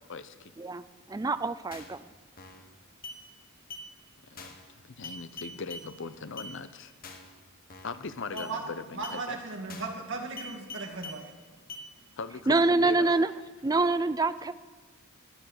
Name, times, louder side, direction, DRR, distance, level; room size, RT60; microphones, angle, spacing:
voice 1, 0.1-0.5 4.3-4.5 4.9-6.9 7.8-9.4 12.2-13.1, left 4 dB, 60° left, 11 dB, 0.8 m, -39 dB
voice 2, 1.1-2.0 12.5-13.3 13.6-14.5, right 3 dB, 15° right, 13 dB, 0.4 m, -25 dB
sound 1, 1.7-2.0 2.4-2.7 3.0-3.2 3.7-3.9 4.4-4.7 5.0-5.9 6.4-6.5 7.0-7.3 7.7-8.0 8.4-8.5 9.0-9.2 9.7-10.0 10.4-11.2 11.7-11.9, left 2 dB, 45° left, 1.6 m, -43 dB
voice 3, 8.9-11.2, right 3 dB, 60° right, 1 dB, 2.4 m, -36 dB
17.0 x 10.0 x 6.7 m, 1.3 s
head